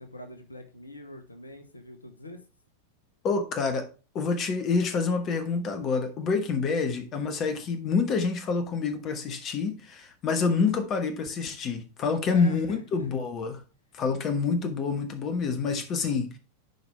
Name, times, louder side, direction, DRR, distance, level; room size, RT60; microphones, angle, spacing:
voice 1, 0.0-2.4 12.2-13.1, left 1 dB, 80° left, 1.1 m, -44 dB
voice 2, 3.2-3.9 4.1-13.6 13.9-16.4, left 4 dB, 30° left, 1.3 m, -27 dB
11.0 x 5.0 x 3.3 m
figure-of-eight pair, 90°, 0 cm